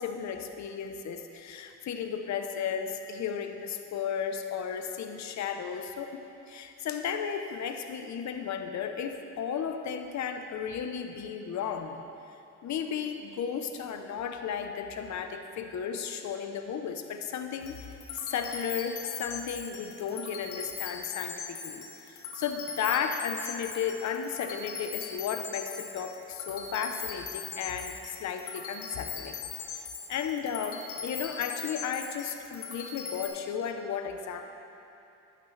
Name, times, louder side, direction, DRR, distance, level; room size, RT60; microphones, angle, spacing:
voice 1, 0.0-12.0 12.6-17.9 18.1-29.4 29.7-34.4, left 7 dB, 65° left, 6 dB, 0.9 m, -34 dB
sound 1, 17.6-33.3, left 6 dB, 85° left, 1.6 m, -40 dB
11.5 x 11.0 x 3.3 m, 2.9 s
cardioid pair, 90°, 30 cm